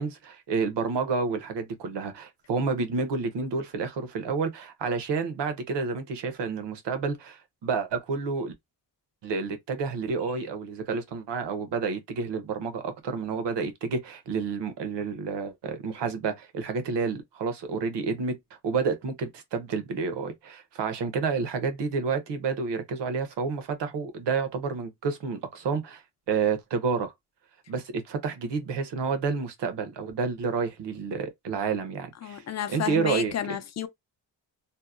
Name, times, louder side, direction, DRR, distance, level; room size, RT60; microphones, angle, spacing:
voice 1, 0.0-8.5 9.2-18.4 18.6-26.0 26.3-27.1 27.7-32.4 32.7-33.3, right 5 dB, 75° right, 0.8 m, -29 dB
voice 2, 32.2-33.9, left 9 dB, 40° left, 0.4 m, -31 dB
2.7 x 2.1 x 2.3 m
wide cardioid pair, 115°, 42 cm